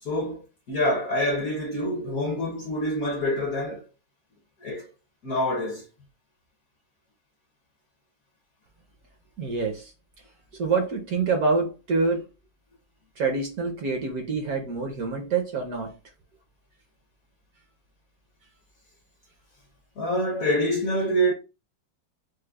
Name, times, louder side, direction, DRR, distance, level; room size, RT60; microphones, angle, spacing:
voice 1, 0.0-3.9 4.6-4.9 5.2-5.8 20.0-21.3, equal, 65° left, 0.9 m, -26 dB
voice 2, 9.4-9.9 10.5-12.3 13.2-16.0, right 4 dB, 65° right, 1.0 m, -26 dB
4.9 x 2.0 x 2.2 m
omnidirectional pair, 2.1 m